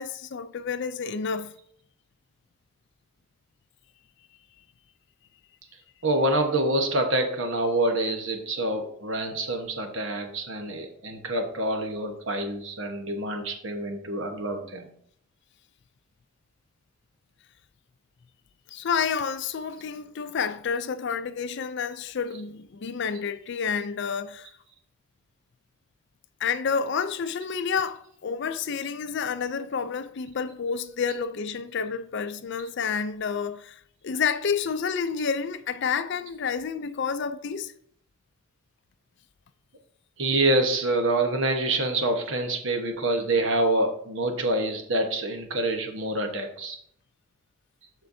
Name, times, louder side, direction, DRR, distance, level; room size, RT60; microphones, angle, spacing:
voice 1, 0.0-1.6 18.7-24.5 26.4-37.7, left 6 dB, 55° left, 0.4 m, -29 dB
voice 2, 6.0-14.9 40.2-46.8, right 1 dB, 60° right, 1.2 m, -26 dB
13.0 x 4.4 x 2.7 m
head